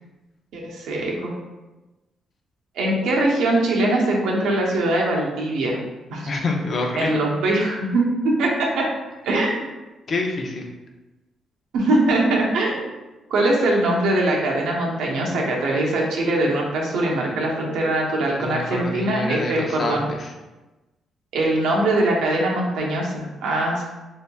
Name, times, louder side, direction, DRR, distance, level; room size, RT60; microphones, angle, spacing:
voice 1, 0.5-1.3 2.8-5.8 6.1-6.2 7.0-8.9 9.2-9.7 11.7-12.9 13.3-20.0 21.3-23.8, right 1 dB, 90° right, -2 dB, 0.7 m, -22 dB
voice 2, 6.3-7.2 10.1-10.6 18.4-20.2, left 2 dB, 50° left, 2 dB, 0.5 m, -26 dB
3.3 x 2.8 x 2.2 m, 1.1 s
cardioid pair, 105°, 0 cm